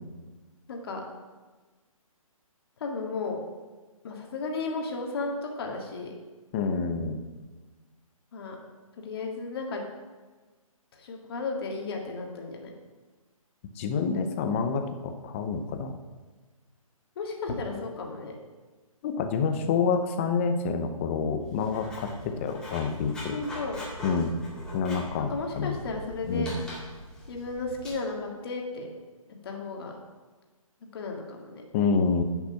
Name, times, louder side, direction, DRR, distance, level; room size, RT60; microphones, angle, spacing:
voice 1, 0.7-1.0 2.8-3.4 4.0-6.1 8.3-8.6 9.0-9.8 10.9-12.7 17.2-18.3 23.3-23.8 25.2-26.5 27.3-28.9 29.4-29.9 30.9-31.6, left 3 dB, 45° left, 1 dB, 2.0 m, -34 dB
voice 2, 6.5-7.2 13.8-15.9 19.0-23.4 24.0-24.3 24.7-25.8 26.3-26.5 31.7-32.2, left 5 dB, 20° left, 7 dB, 0.7 m, -28 dB
Writing, 21.4-27.9, equal, 5° left, 2.1 m, -42 dB
10.0 x 5.9 x 5.7 m, 1.3 s
hypercardioid pair, 155°, 18 cm